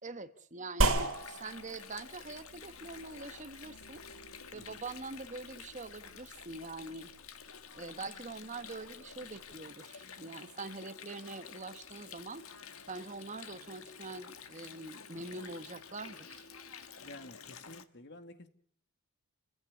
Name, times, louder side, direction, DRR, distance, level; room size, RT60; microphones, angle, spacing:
voice 1, 0.0-4.0 4.5-7.1 7.7-12.5 12.9-16.5, right 3 dB, 35° right, 1.4 m, -44 dB
sound 1, 0.8-9.5, right 2 dB, 65° right, 4.7 m, -38 dB
Water, 0.9-17.9, left 6 dB, 70° left, 1.9 m, -50 dB
voice 2, 17.0-18.5, left 1 dB, 50° left, 2.2 m, -51 dB
30.0 x 16.0 x 8.4 m
head